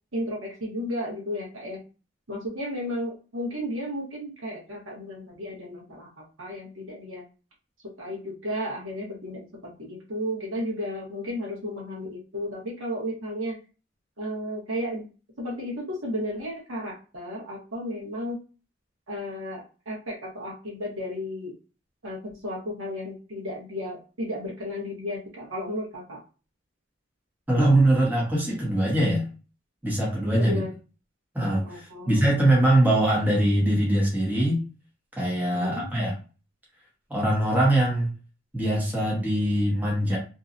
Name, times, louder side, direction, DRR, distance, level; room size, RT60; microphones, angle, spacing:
voice 1, 0.1-1.8 2.3-7.2 7.8-13.6 14.2-15.1 15.4-18.4 19.1-21.5 22.0-26.2 30.4-30.7 31.6-32.2 35.5-35.9, left 1 dB, 75° right, -3 dB, 1.0 m, -33 dB
voice 2, 27.5-29.3 29.8-30.6 31.3-34.6 35.2-36.1 37.1-38.1 38.5-40.2, right 1 dB, 10° right, -4 dB, 0.8 m, -22 dB
2.7 x 2.2 x 2.5 m, 0.34 s
head